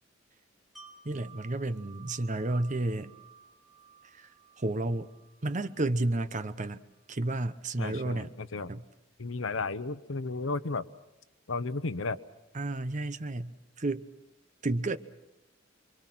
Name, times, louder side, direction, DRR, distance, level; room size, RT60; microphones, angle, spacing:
Wind chime, 0.8-6.6 7.0-7.1, right 6 dB, ahead, 4.0 m, -56 dB
voice 1, 1.0-3.1 4.1-4.3 4.6-5.1 5.4-6.8 7.1-8.3 8.7-8.8 12.5-14.0 14.6-15.0, right 2 dB, 40° right, 11 dB, 0.9 m, -31 dB
voice 2, 7.8-8.7 9.2-10.8 11.5-12.2, left 3 dB, 80° left, 13 dB, 0.9 m, -33 dB
28.0 x 24.0 x 6.1 m, 0.95 s
head